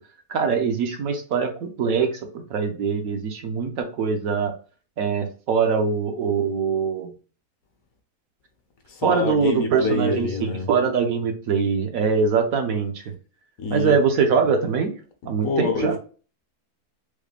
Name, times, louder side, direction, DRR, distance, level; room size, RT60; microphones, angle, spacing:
voice 1, 0.3-4.5 5.0-7.1 9.0-13.0 13.7-14.9 15.2-16.0, right 5 dB, 65° right, 1.1 m, -23 dB
voice 2, 8.9-10.7 13.6-14.0 15.4-16.0, left 3 dB, 65° left, 1.0 m, -26 dB
4.8 x 2.1 x 3.3 m
omnidirectional pair, 1.7 m